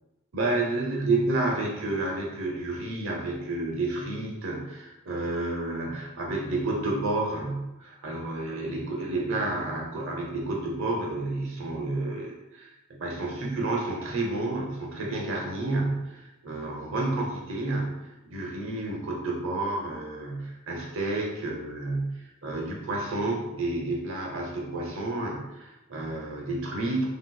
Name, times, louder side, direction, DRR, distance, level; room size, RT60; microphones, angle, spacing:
voice 1, 0.3-27.1, right 2 dB, 65° right, -1 dB, 0.8 m, -30 dB
3.3 x 2.9 x 2.2 m, 1.0 s
head